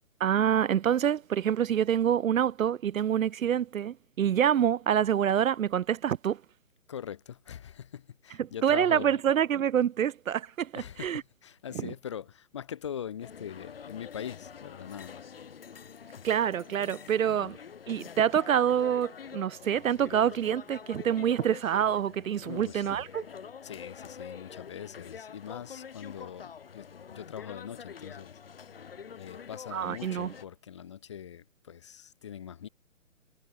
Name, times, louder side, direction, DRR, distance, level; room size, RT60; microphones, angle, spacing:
voice 1, 0.2-6.4 8.4-11.2 11.7-11.9 16.2-17.6 17.9-23.3 29.7-30.3, right 9 dB, 75° right, 0.6 m, -26 dB
voice 2, 6.9-9.2 10.7-15.2 17.4-17.5 22.4-23.0 23.6-28.4 29.1-32.7, left 9 dB, 20° left, 1.6 m, -42 dB
sound 1, 13.2-30.5, left 7 dB, 45° left, 2.7 m, -46 dB
hypercardioid pair, 175°, 41 cm